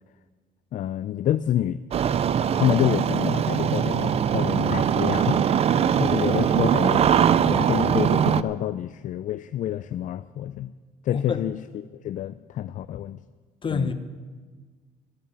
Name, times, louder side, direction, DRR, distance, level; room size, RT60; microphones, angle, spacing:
voice 1, 0.7-1.8 2.5-7.1 7.4-10.7 11.0-11.6 11.9-13.2 13.7-13.9, left 11 dB, 50° left, 13 dB, 0.4 m, -28 dB
Engine starting, 1.9-8.4, right 8 dB, 35° right, 0.4 m, -21 dB
voice 2, 11.1-11.4 13.6-13.9, left 5 dB, 30° left, 9 dB, 1.0 m, -27 dB
12.5 x 7.1 x 9.9 m, 1.5 s
cardioid pair, 110°, 17 cm